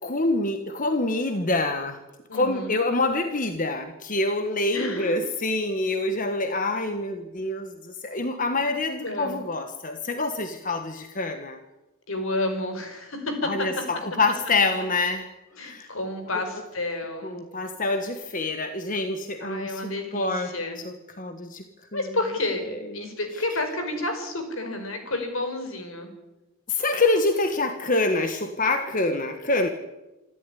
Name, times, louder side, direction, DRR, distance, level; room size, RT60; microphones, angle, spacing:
voice 1, 0.0-2.0 2.3-11.6 13.4-15.3 15.6-15.9 17.2-19.8 20.1-20.6 21.2-21.6 21.9-22.0 23.0-23.1 26.7-29.7, left 2 dB, 40° left, 7 dB, 1.3 m, -26 dB
voice 2, 2.3-2.8 4.7-5.2 9.0-9.4 12.1-13.7 15.5-17.4 19.4-20.8 21.9-26.1, left 2 dB, 70° left, 6 dB, 5.0 m, -30 dB
26.5 x 12.5 x 10.0 m, 1.1 s
head